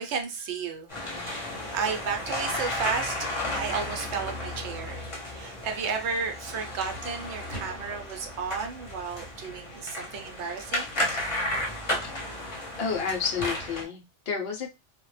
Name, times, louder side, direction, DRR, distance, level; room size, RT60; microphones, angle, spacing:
voice 1, 0.0-10.9, right 5 dB, 75° right, 0.8 m, -33 dB
sound 1, 0.9-13.8, left 1 dB, 30° left, 0.7 m, -33 dB
voice 2, 12.8-14.7, left 6 dB, 65° left, 0.7 m, -30 dB
2.1 x 2.0 x 3.1 m
omnidirectional pair, 1.2 m